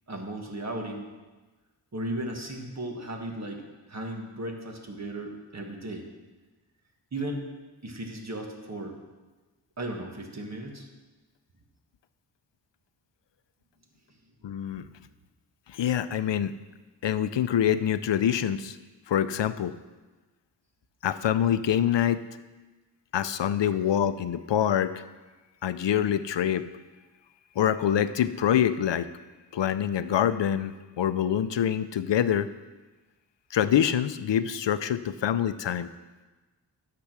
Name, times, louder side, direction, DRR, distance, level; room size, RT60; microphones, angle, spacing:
voice 1, 0.1-1.1 1.9-6.1 7.1-7.5 7.8-9.0 9.8-10.9 23.7-23.8, right 1 dB, 40° right, 2 dB, 1.7 m, -36 dB
voice 2, 14.4-14.9 15.7-16.5 17.0-18.8 19.1-19.7 21.0-22.2 23.1-25.0 25.6-26.7 27.6-29.1 29.5-32.5 33.5-35.9, left 9 dB, 75° left, 12 dB, 0.6 m, -25 dB
12.0 x 6.8 x 6.1 m, 1.2 s
wide cardioid pair, 110°, 43 cm